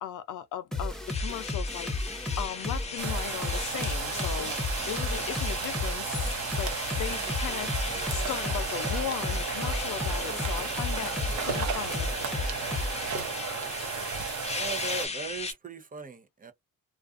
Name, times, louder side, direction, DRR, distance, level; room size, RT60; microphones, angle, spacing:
voice 1, 0.0-1.9 2.4-4.6 4.9-6.7 7.0-12.1, left 11 dB, 80° left, 0.5 m, -37 dB
sound 1, 0.7-13.1, left 2 dB, ahead, 0.9 m, -33 dB
sound 2, 1.1-15.5, left 4 dB, 20° left, 0.7 m, -38 dB
sound 3, 3.0-15.1, right 6 dB, 70° right, 0.9 m, -34 dB
voice 2, 14.5-16.5, right 3 dB, 30° right, 0.7 m, -38 dB
2.4 x 2.4 x 2.4 m
cardioid pair, 90°, 30 cm